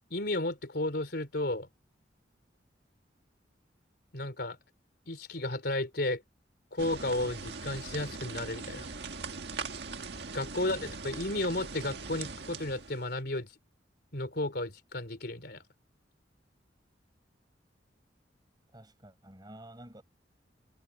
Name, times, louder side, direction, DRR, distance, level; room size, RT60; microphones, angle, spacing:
voice 1, 0.1-1.7 4.1-4.6 5.1-6.2 6.7-8.9 10.3-13.5 14.1-15.6, left 2 dB, 60° left, 3.7 m, -33 dB
sound 1, 6.8-13.2, right 4 dB, 65° right, 1.8 m, -41 dB
voice 2, 10.5-10.9 18.7-20.0, right 1 dB, 25° right, 5.5 m, -50 dB
head